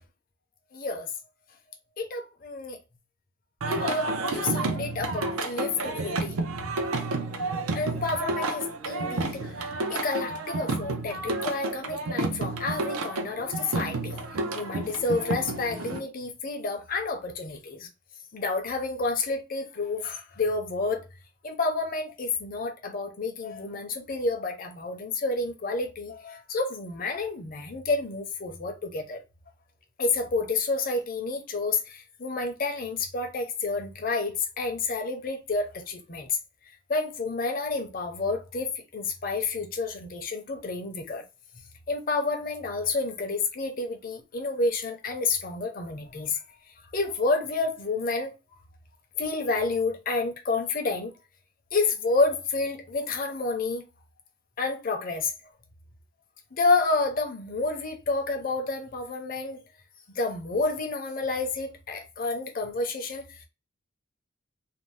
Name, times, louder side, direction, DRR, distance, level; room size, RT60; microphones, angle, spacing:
voice 1, 0.7-1.1 2.0-2.8 3.7-6.7 7.7-14.2 14.5-17.9 18.3-21.0 21.4-29.2 30.0-36.4 36.9-41.2 41.9-46.4 46.9-48.3 49.2-51.1 51.7-53.8 54.6-55.3 56.5-59.6 60.2-63.4, left 3 dB, 40° left, 0.6 m, -29 dB
Singing, 3.6-16.0, right 2 dB, 85° right, 0.5 m, -30 dB
2.6 x 2.0 x 3.1 m
head